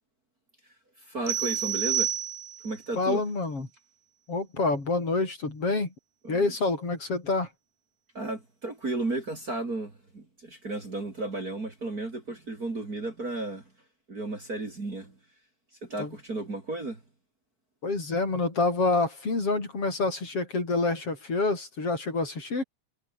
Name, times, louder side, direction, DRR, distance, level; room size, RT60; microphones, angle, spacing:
voice 1, 1.1-2.1 2.6-3.2 6.2-6.5 8.1-13.6 14.1-15.1 15.8-17.0, right 2 dB, 30° right, 3.9 m, -33 dB
sound 1, 1.3-2.8, right 10 dB, 85° right, 3.4 m, -29 dB
voice 2, 3.0-3.7 4.3-5.9 6.3-7.5 16.0-16.1 17.8-22.6, left 3 dB, 45° left, 6.5 m, -27 dB
omnidirectional pair, 3.5 m